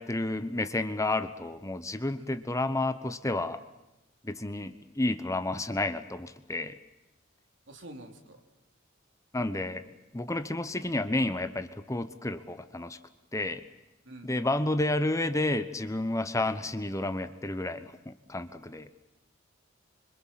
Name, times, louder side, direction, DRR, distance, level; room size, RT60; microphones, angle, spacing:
voice 1, 0.0-3.6 4.2-6.8 9.3-13.0 13.3-13.6 14.2-18.9, left 2 dB, 15° left, 11 dB, 1.0 m, -31 dB
voice 2, 7.7-8.4 14.0-14.5, right 1 dB, 65° right, 4 dB, 3.7 m, -47 dB
27.0 x 25.5 x 7.6 m, 0.98 s
head